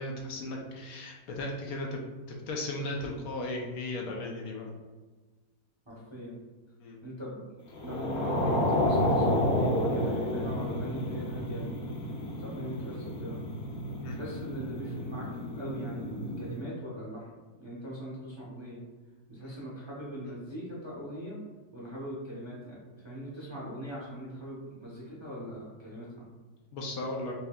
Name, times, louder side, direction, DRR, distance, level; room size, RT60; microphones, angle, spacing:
voice 1, 0.0-2.0 2.3-4.7 6.8-7.0 14.0-14.2 19.4-19.6 26.7-27.3, left 2 dB, 75° left, 0 dB, 1.0 m, -36 dB
voice 2, 5.9-6.4 7.0-11.9 12.4-13.4 14.1-17.3 17.6-18.8 19.3-21.4 21.7-26.3, equal, 25° right, -6 dB, 0.7 m, -41 dB
sound 1, 7.7-16.5, left 1 dB, 60° left, 0.8 m, -30 dB
5.5 x 2.7 x 2.2 m, 1.3 s
omnidirectional pair, 1.7 m